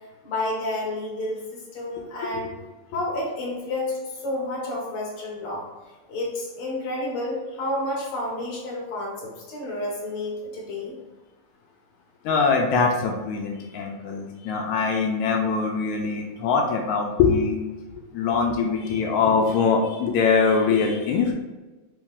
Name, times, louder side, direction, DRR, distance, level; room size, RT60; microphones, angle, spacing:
voice 1, 0.2-2.5 2.9-5.6 6.1-10.9, left 1 dB, 60° left, -3 dB, 1.6 m, -30 dB
voice 2, 12.2-17.6 17.9-21.3, left 5 dB, 80° left, 1 dB, 1.7 m, -23 dB
4.8 x 3.1 x 3.5 m, 1.2 s
omnidirectional pair, 3.7 m